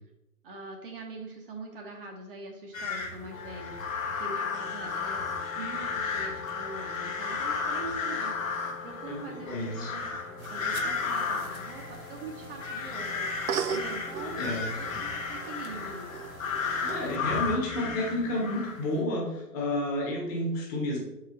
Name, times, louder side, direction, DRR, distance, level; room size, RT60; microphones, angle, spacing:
voice 1, 0.4-14.4 14.8-16.1, right 3 dB, 35° right, 1 dB, 0.9 m, -43 dB
sound 1, 2.7-19.0, left 5 dB, 55° left, 1.1 m, -34 dB
sound 2, 3.3-17.1, left 6 dB, 80° left, 0.7 m, -46 dB
voice 2, 9.1-9.9 14.2-14.7 16.8-21.0, left 1 dB, 20° left, -2 dB, 1.1 m, -31 dB
sound 3, 10.4-17.2, right 7 dB, 65° right, 0.5 m, -39 dB
6.7 x 4.8 x 3.1 m, 0.94 s
figure-of-eight pair, 120°, 48 cm